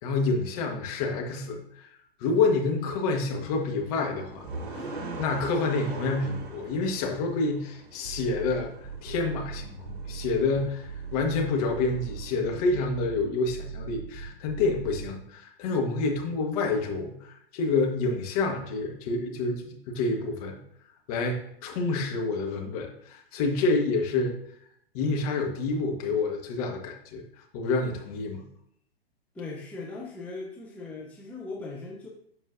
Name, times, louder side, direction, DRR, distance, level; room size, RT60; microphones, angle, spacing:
voice 1, 0.0-1.6 2.2-8.7 9.0-10.8 11.1-20.6 21.1-24.3 24.9-27.2 27.5-28.4, left 3 dB, 35° left, 1 dB, 1.4 m, -28 dB
sound 1, 3.4-12.4, right 3 dB, 50° right, 1.3 m, -42 dB
sound 2, 8.0-15.1, right 7 dB, 35° right, 2.6 m, -39 dB
voice 2, 29.3-32.1, left 3 dB, 5° left, -4 dB, 0.7 m, -39 dB
12.0 x 4.6 x 2.6 m, 0.69 s
figure-of-eight pair, 110°, 31 cm